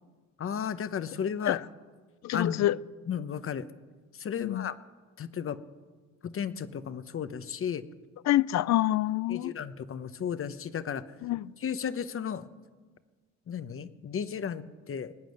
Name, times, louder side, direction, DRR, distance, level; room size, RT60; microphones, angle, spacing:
voice 1, 0.4-1.6 2.3-2.7 3.1-3.7 4.1-4.8 5.2-5.6 6.2-7.8 9.3-11.0 11.6-12.5 13.5-15.1, left 7 dB, 45° left, 0.9 m, -34 dB
voice 2, 2.2-2.8 4.4-4.7 8.3-9.5 11.2-11.5, left 14 dB, 65° left, 0.5 m, -26 dB
20.0 x 9.1 x 7.9 m
cardioid pair, 90°, 30 cm